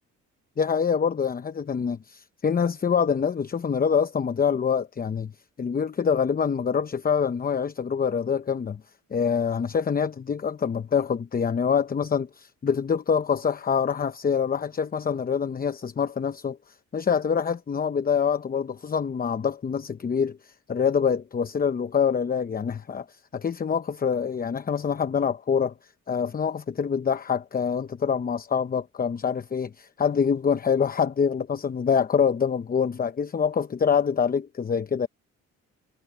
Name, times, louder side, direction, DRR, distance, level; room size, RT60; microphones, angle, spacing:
voice 1, 0.6-5.3 5.6-8.8 9.1-35.1, left 6 dB, 30° left, 0.8 m, -25 dB
cardioid pair, 90°, 30 cm